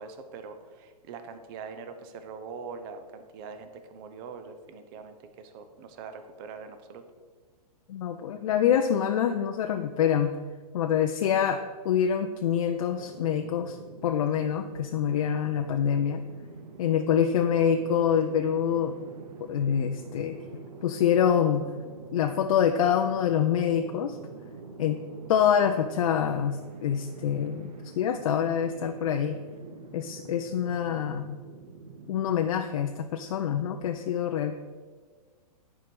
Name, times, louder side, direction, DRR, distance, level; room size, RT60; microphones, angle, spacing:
voice 1, 0.0-7.0, right 5 dB, 35° right, 8 dB, 0.8 m, -43 dB
voice 2, 7.9-10.4 10.7-13.8 14.0-16.2 16.8-19.0 19.4-20.4 20.8-21.7 22.1-24.2 24.8-25.0 25.3-29.4 29.9-31.4 32.1-34.5, left 8 dB, 55° left, 6 dB, 0.5 m, -26 dB
sound 1, 12.9-32.3, right 4 dB, 80° right, 1.1 m, -45 dB
10.5 x 4.7 x 5.2 m, 1.5 s
hypercardioid pair, 145°, 20 cm